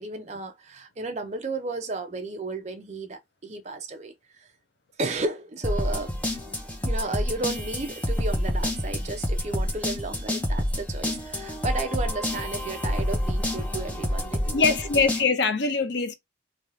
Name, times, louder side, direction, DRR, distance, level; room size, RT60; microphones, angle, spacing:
voice 1, 0.0-4.1 5.0-6.1 6.8-15.0, right 3 dB, 35° right, 0.6 m, -33 dB
sound 1, 5.6-15.2, equal, 5° left, 0.7 m, -28 dB
voice 2, 14.5-16.1, left 4 dB, 65° left, 0.5 m, -23 dB
3.4 x 2.4 x 2.7 m
head